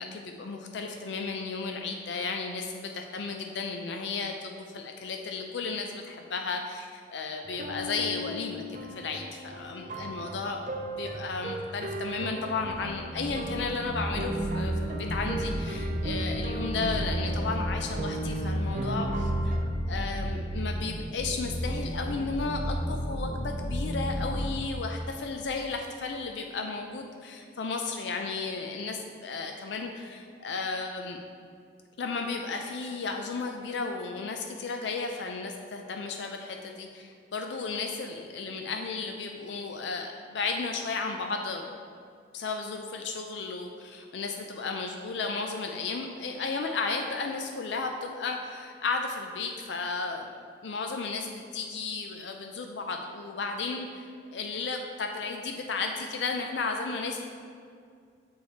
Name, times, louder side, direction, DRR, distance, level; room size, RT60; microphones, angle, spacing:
voice 1, 0.0-19.6 19.9-31.2 32.0-41.7 42.3-50.3 50.6-57.2, left 4 dB, 80° left, 3 dB, 0.5 m, -34 dB
sound 1, 7.4-19.7, right 1 dB, 45° right, 0.4 m, -37 dB
sound 2, 12.4-24.6, equal, 35° left, 1.2 m, -32 dB
6.6 x 4.6 x 4.1 m, 2.2 s
head